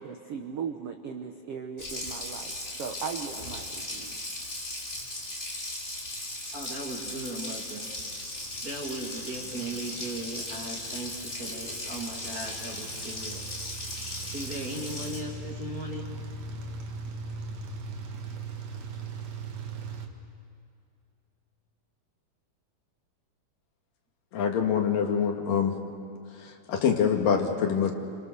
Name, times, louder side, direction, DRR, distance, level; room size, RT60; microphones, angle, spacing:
voice 1, 0.0-4.2, right 6 dB, 75° right, 5 dB, 1.3 m, -38 dB
Water tap faucet, 1.8-15.2, left 1 dB, 20° left, 3.5 m, -37 dB
voice 2, 6.5-7.9 8.6-13.5 14.3-16.1, right 1 dB, 30° right, 0 dB, 1.9 m, -37 dB
sound 1, 8.1-20.1, right 4 dB, 50° right, 2.5 m, -40 dB
voice 3, 24.3-25.8 26.3-27.9, left 7 dB, 70° left, 4 dB, 3.4 m, -25 dB
29.5 x 26.5 x 6.8 m, 2.4 s
omnidirectional pair, 4.2 m